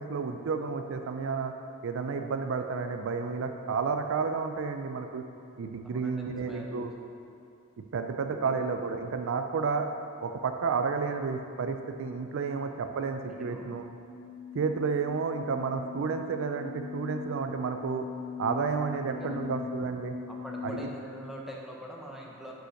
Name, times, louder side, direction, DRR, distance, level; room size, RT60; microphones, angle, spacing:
voice 1, 0.0-1.5 1.8-5.2 5.6-6.9 7.9-9.9 10.2-13.8 14.5-18.1 18.4-20.2 20.6-20.8, right 5 dB, 65° right, 6 dB, 0.4 m, -31 dB
voice 2, 5.8-6.9 8.3-8.6 13.3-13.7 18.9-19.7 20.3-22.5, equal, ahead, -3 dB, 0.9 m, -44 dB
sound 1, 11.6-20.8, left 5 dB, 40° left, 1.0 m, -42 dB
6.4 x 5.4 x 6.3 m, 2.5 s
head